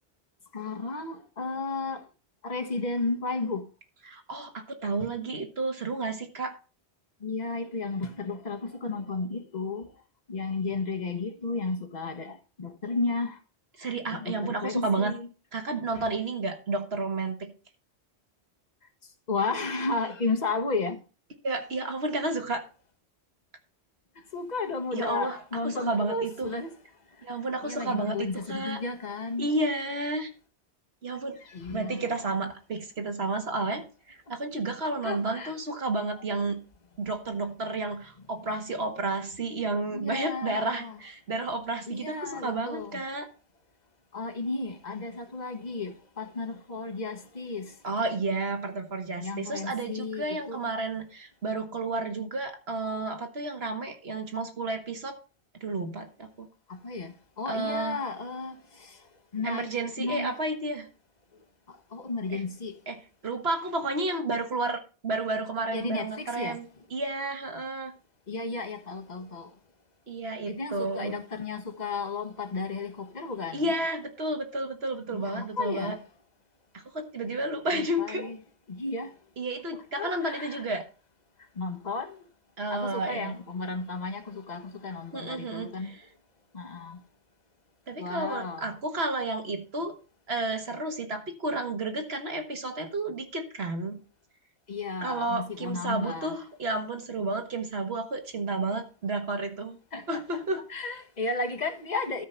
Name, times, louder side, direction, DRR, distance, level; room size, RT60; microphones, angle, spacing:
voice 1, 0.5-2.0 2.4-3.7 5.0-5.1 7.2-9.9 10.3-13.4 13.8-15.3 15.9-16.1 19.3-21.0 24.3-26.7 27.6-29.5 31.4-32.4 35.0-35.5 38.2-38.3 39.9-41.0 41.9-43.0 44.1-47.7 49.2-50.6 56.7-59.0 59.3-60.3 61.7-62.7 65.7-66.6 68.3-69.5 70.5-73.7 75.1-76.0 77.7-78.4 78.7-79.1 79.9-80.6 81.6-82.2 82.7-85.9 86.5-87.0 88.0-88.6 94.7-96.4 99.9-100.4 100.7-102.2, left 3 dB, 40° left, 1.3 m, -33 dB
voice 2, 4.1-6.6 13.8-15.1 15.5-17.5 21.4-22.6 24.9-26.5 27.2-28.8 29.4-30.3 31.0-31.4 31.7-36.6 37.0-43.3 47.8-55.2 55.6-56.5 57.5-58.0 59.4-60.9 62.3-62.4 62.9-63.0 63.2-66.7 66.9-67.9 70.1-71.2 73.5-76.0 76.7-78.3 79.4-80.8 82.6-83.3 85.1-85.7 87.9-89.9 90.3-94.0 95.0-99.8 100.1-100.6, right 2 dB, 70° right, 1.8 m, -31 dB
13.0 x 4.7 x 5.7 m
omnidirectional pair, 1.1 m